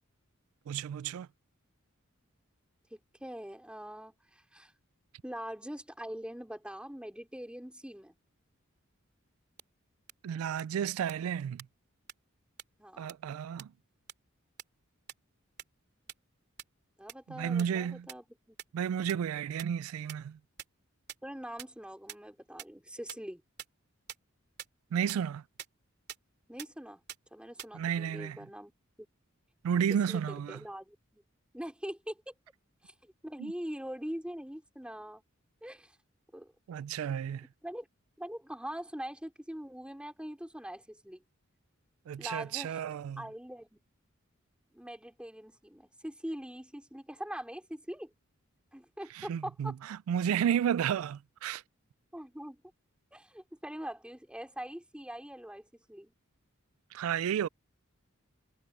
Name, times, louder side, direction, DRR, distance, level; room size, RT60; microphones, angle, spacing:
voice 1, 0.7-1.3 10.2-11.7 13.0-13.7 17.3-18.1 18.7-20.4 24.9-25.4 27.7-28.4 29.6-30.6 33.4-33.5 36.7-37.5 42.1-43.2 49.1-51.6 56.9-57.5, right 8 dB, 85° right, 0.3 m, -32 dB
voice 2, 2.9-4.7 5.2-8.2 12.8-13.2 17.0-18.6 21.2-23.4 26.5-27.0 27.3-28.7 30.1-30.2 30.5-31.2 31.5-32.3 32.8-35.2 35.6-36.0 36.3-36.5 37.6-37.9 38.2-41.2 42.2-42.8 43.2-43.8 44.7-48.1 48.7-49.7 52.1-52.6 53.1-56.1, equal, 5° right, 3.7 m, -43 dB
sound 1, 9.6-9.7 10.1-10.2 10.6-10.7 11.1-11.2 11.6-11.7 12.1-12.2 12.6-12.7 13.1-13.2 13.6-13.7 14.1-14.2 14.6-14.7 15.1-15.2 15.6-15.7 16.1-16.2 16.6-16.7 17.1-17.2 17.6-17.7 18.1-18.2 18.6-18.7 19.1-19.2 19.6-19.7 20.1-20.2 20.6-20.7 21.1-21.2 21.6-21.7 22.1-22.2 22.6-22.7 23.1-23.2 23.6-23.7 24.1-24.2 24.6-24.7 25.1-25.2 25.6-25.7 26.1-26.2 26.6-26.7 27.1-27.2 27.6-27.7, right 10 dB, 55° right, 2.7 m, -42 dB
head